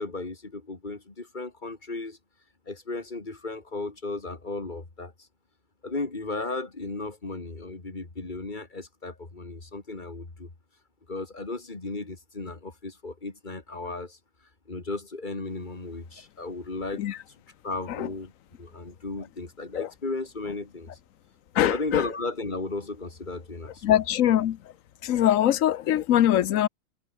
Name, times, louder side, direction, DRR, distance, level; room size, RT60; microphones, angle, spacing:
voice 1, 0.0-2.2 2.7-5.1 5.8-10.5 11.1-14.2 14.7-17.1 17.6-18.3 18.6-20.9 21.6-24.0, left 3 dB, 35° left, 2.6 m, -35 dB
voice 2, 21.5-22.0 23.8-24.6 25.0-26.7, left 12 dB, 75° left, 1.1 m, -22 dB
omnidirectional pair, 1.4 m